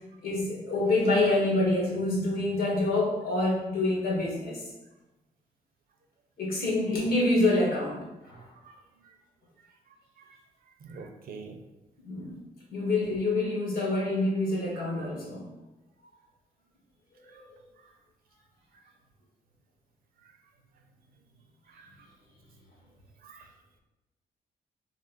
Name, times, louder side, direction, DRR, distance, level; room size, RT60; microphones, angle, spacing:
voice 1, 0.2-4.6 6.4-8.4 12.0-12.4 12.7-15.5 17.3-17.4, left 2 dB, 75° left, -4 dB, 1.4 m, -27 dB
voice 2, 10.8-11.6 14.7-14.9 21.7-21.9 23.2-23.5, right 4 dB, 75° right, 4 dB, 0.6 m, -45 dB
3.3 x 2.6 x 4.2 m, 1.0 s
cardioid pair, 75°, 15 cm